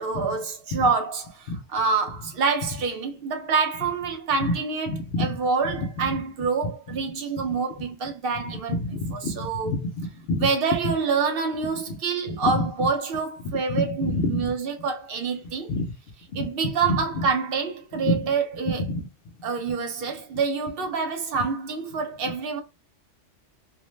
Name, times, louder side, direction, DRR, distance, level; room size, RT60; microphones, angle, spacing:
voice 1, 0.0-8.8 9.1-9.7 10.4-15.7 16.4-18.8 19.4-22.6, right 5 dB, 60° right, 0.6 m, -27 dB
voice 2, 4.9-5.4 5.7-6.2 6.9-7.0 8.7-10.5 10.8-10.9 11.7-12.0 12.3-12.9 13.4-14.5 15.7-15.9 16.3-16.5 16.8-17.3 18.0-18.3 18.9-19.1, left 2 dB, 65° left, 0.7 m, -28 dB
2.5 x 2.0 x 3.1 m
omnidirectional pair, 1.3 m